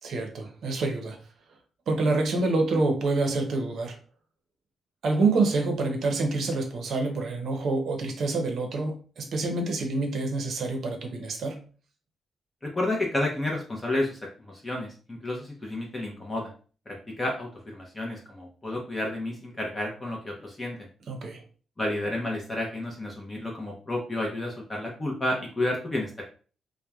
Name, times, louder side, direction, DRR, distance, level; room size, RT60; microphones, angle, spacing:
voice 1, 0.0-1.2 1.9-4.0 5.0-11.6 21.1-21.4, right 3 dB, 65° right, 4 dB, 0.6 m, -27 dB
voice 2, 12.7-16.5 16.9-20.9 21.8-26.2, left 1 dB, 20° left, -2 dB, 0.6 m, -31 dB
2.9 x 2.1 x 2.3 m, 0.39 s
cardioid pair, 115°, 0 cm